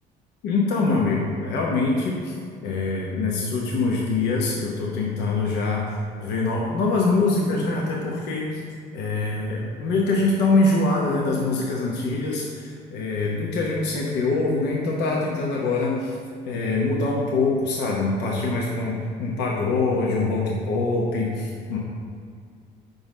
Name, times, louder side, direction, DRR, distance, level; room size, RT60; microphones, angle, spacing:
voice 1, 0.4-2.3 2.6-5.9 6.2-8.6 8.9-16.2 16.5-21.8, left 3 dB, 90° left, -3 dB, 0.9 m, -24 dB
5.2 x 4.0 x 6.0 m, 2.2 s
cardioid pair, 110°, 17 cm